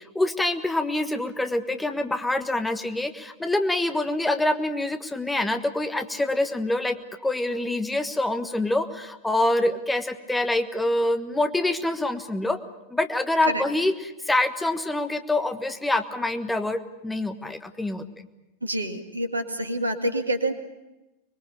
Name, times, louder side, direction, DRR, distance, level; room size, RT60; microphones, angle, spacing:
voice 1, 0.1-7.0 7.2-12.6 12.9-18.1, left 2 dB, 5° left, 8 dB, 1.4 m, -25 dB
voice 2, 18.6-20.5, right 1 dB, 80° right, 7 dB, 2.0 m, -27 dB
25.5 x 21.5 x 7.0 m, 0.99 s
figure-of-eight pair, 90°, 0 cm